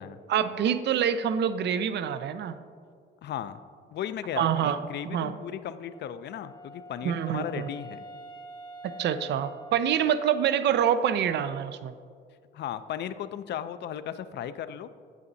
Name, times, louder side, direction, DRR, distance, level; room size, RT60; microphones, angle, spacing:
voice 1, 0.3-2.6 4.4-4.8 5.1-5.3 7.0-7.7 8.8-11.9, right 9 dB, 60° right, 12 dB, 0.4 m, -26 dB
voice 2, 3.2-3.6 3.9-8.0 12.5-14.9, left 9 dB, 60° left, 12 dB, 0.4 m, -36 dB
Wind instrument woodwind instrument, 5.9-10.7, right 1 dB, 20° left, 0.6 m, -46 dB
8.5 x 8.2 x 2.7 m, 2.2 s
cardioid pair, 90°, 20 cm